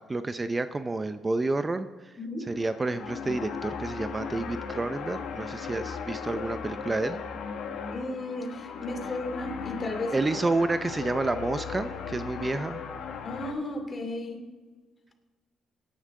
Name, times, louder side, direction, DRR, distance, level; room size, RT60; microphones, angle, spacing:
voice 1, 0.1-7.2 10.1-12.8, right 2 dB, 25° right, 10 dB, 0.6 m, -30 dB
voice 2, 2.2-2.5 7.9-10.2 13.2-14.4, left 2 dB, 35° left, 4 dB, 2.5 m, -34 dB
sound 1, 2.4-13.5, left 6 dB, 80° left, 1.6 m, -37 dB
18.0 x 10.5 x 3.7 m, 1.3 s
cardioid pair, 90°, 0 cm